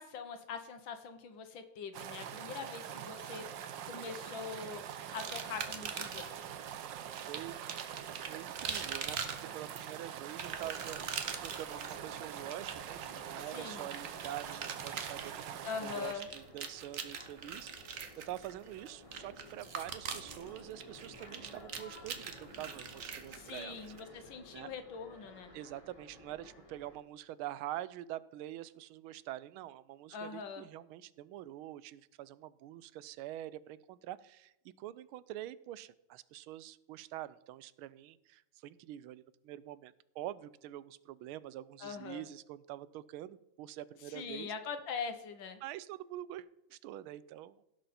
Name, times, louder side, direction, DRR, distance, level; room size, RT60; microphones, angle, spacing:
voice 1, 0.0-4.8 5.1-6.3 13.5-13.9 15.6-16.3 23.3-25.5 30.1-30.7 41.8-42.2 44.1-45.6, left 6 dB, 70° left, 8 dB, 1.7 m, -43 dB
sound 1, 1.9-16.1, right 9 dB, 70° right, 1.4 m, -44 dB
sound 2, 5.2-6.4 7.1-24.0, right 6 dB, 50° right, 1.1 m, -43 dB
voice 2, 6.8-7.6 7.8-11.0 11.4-18.0 18.2-24.2 24.5-24.7 25.5-44.5 45.6-47.6, right 13 dB, 90° right, 17 dB, 1.4 m, -46 dB
sound 3, 10.4-27.0, left 1 dB, 15° left, 1.7 m, -55 dB
17.0 x 6.4 x 4.2 m, 0.87 s
omnidirectional pair, 2.2 m